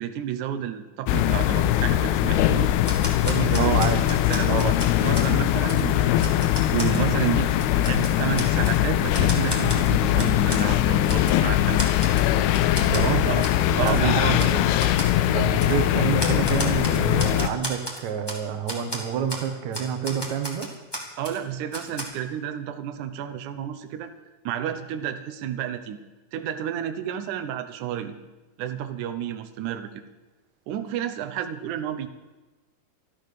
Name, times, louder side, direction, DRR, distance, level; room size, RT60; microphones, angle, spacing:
voice 1, 0.0-2.7 3.2-3.8 4.3-6.3 6.7-11.9 13.3-13.4 13.8-14.5 21.2-24.1 24.4-26.0 26.3-28.2 28.6-29.9 30.7-32.1, right 10 dB, 85° right, 6 dB, 1.7 m, -30 dB
sound 1, 1.1-17.5, left 13 dB, 80° left, 2.6 m, -21 dB
Typewriter, 2.8-5.3 5.7-5.8 6.2-7.0 7.5-8.8 9.1-10.6 11.1-11.4 11.8-12.3 12.5-13.0 13.4-13.6 13.9-14.0 14.4-14.5 14.8-15.1 15.6-15.7 16.2-18.4 18.7-19.0 19.3-19.4 19.7-21.4 21.7-22.0, equal, 10° left, 1.2 m, -34 dB
voice 2, 3.6-4.0 4.5-4.8 12.8-13.3 13.7-14.7 15.3-20.7, right 8 dB, 65° right, 7 dB, 1.9 m, -28 dB
13.5 x 12.5 x 6.7 m, 1.2 s
omnidirectional pair, 4.9 m